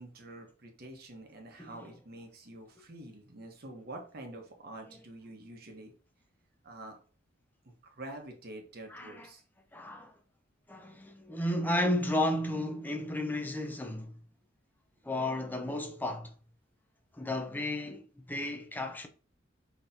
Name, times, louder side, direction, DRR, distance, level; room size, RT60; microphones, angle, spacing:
voice 1, 0.0-5.9 6.6-7.0 7.6-9.4, right 1 dB, 55° right, 1.1 m, -47 dB
voice 2, 1.6-1.9 4.9-5.0 8.9-9.3 9.7-10.1 10.7-14.1 15.0-16.3 17.1-19.1, left 1 dB, 10° left, 0.5 m, -33 dB
5.8 x 3.1 x 2.7 m
head